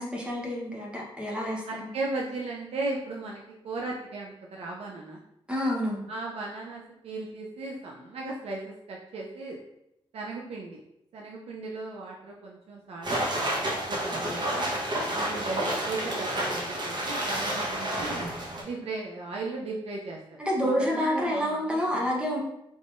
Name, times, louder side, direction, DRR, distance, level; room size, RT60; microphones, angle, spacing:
voice 1, 0.0-1.9 5.5-6.1 20.4-22.4, equal, 10° right, -3 dB, 0.8 m, -28 dB
voice 2, 1.7-5.2 6.1-9.6 10.1-10.8 11.1-14.7 15.1-18.2 18.6-20.2 20.6-22.1, right 3 dB, 80° right, -2 dB, 0.5 m, -36 dB
sound 1, 13.0-18.6, right 1 dB, 45° right, 1.0 m, -30 dB
3.6 x 3.1 x 2.5 m, 0.82 s
cardioid pair, 90°, 10 cm